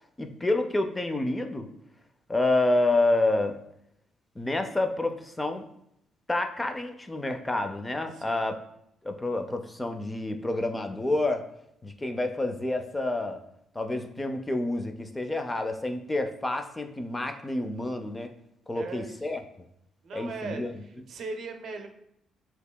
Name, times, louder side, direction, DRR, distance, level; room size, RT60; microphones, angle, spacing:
voice 1, 0.2-1.7 2.3-3.6 4.4-5.6 6.3-8.6 9.0-11.5 11.8-13.4 13.7-18.3 18.7-19.4 20.1-20.7, left 2 dB, 15° left, 6 dB, 0.4 m, -28 dB
voice 2, 8.1-8.5 18.7-19.4 20.0-21.9, right 3 dB, 65° right, 5 dB, 0.6 m, -39 dB
6.4 x 2.8 x 2.2 m, 0.77 s
cardioid pair, 90°, 0 cm